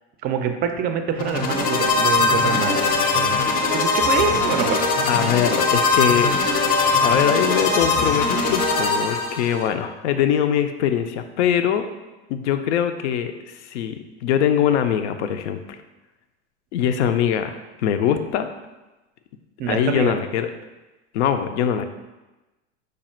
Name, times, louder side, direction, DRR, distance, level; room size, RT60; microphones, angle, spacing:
voice 1, 0.2-3.3 3.7-4.9 19.6-20.1, right 7 dB, 30° right, 6 dB, 0.4 m, -25 dB
sound 1, 1.2-9.7, left 3 dB, 25° left, 0.5 m, -21 dB
voice 2, 5.1-6.3 7.0-11.8 12.3-15.6 16.7-18.5 19.7-20.5 21.1-21.8, left 9 dB, 80° left, 8 dB, 0.5 m, -22 dB
5.1 x 2.3 x 4.3 m, 1.1 s
supercardioid pair, 120°, 34 cm